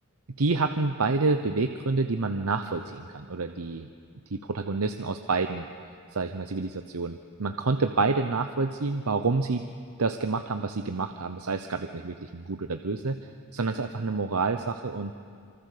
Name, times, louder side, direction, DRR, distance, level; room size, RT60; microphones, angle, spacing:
voice 1, 0.4-3.9 4.3-5.6 6.1-9.6 10.0-13.2 13.5-15.1, right 3 dB, 75° right, 7 dB, 0.9 m, -28 dB
26.0 x 24.0 x 6.7 m, 2.2 s
head